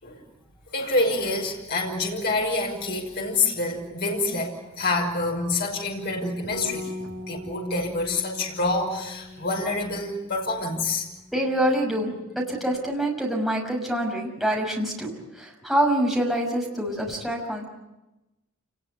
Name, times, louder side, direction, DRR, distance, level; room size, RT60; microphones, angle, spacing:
voice 1, 0.7-6.9 7.3-11.1, left 2 dB, 50° left, 0 dB, 5.7 m, -27 dB
Bass guitar, 6.5-12.8, left 2 dB, 80° right, 2.7 m, -41 dB
voice 2, 11.3-17.6, right 1 dB, ahead, -1 dB, 6.1 m, -26 dB
28.5 x 20.5 x 8.5 m, 1.0 s
head